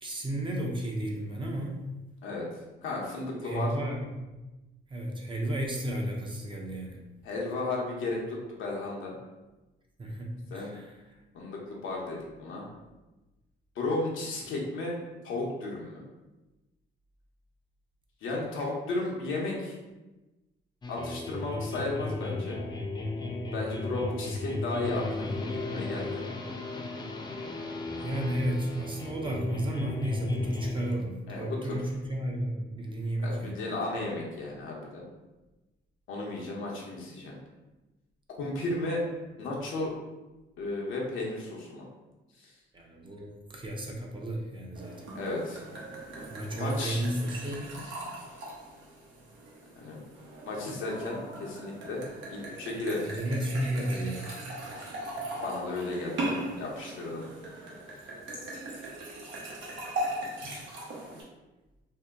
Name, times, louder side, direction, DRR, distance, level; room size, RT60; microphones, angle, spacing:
voice 1, 0.0-1.8 3.4-4.3 4.9-7.0 10.0-11.0 28.0-33.6 42.7-45.0 46.3-47.6 53.0-54.3, right 1 dB, 25° right, 0 dB, 0.6 m, -33 dB
voice 2, 2.8-3.7 7.2-9.1 10.5-10.7 11.3-12.6 13.8-14.9 15.2-16.0 18.2-19.7 20.9-22.6 23.5-25.2 25.5-26.2 31.3-31.8 33.2-35.0 36.1-37.3 38.4-39.0 39.4-39.9 40.6-41.8 45.1-45.6 46.5-47.0 49.8-50.0 50.4-52.0 52.3-53.0 55.4-57.2, left 2 dB, 80° left, -2 dB, 0.9 m, -34 dB
sound 1, 20.8-30.9, left 2 dB, 20° left, 0.4 m, -35 dB
sound 2, 44.7-61.2, right 1 dB, 75° right, 0.8 m, -39 dB
2.8 x 2.1 x 3.5 m, 1.1 s
cardioid pair, 90°, 20 cm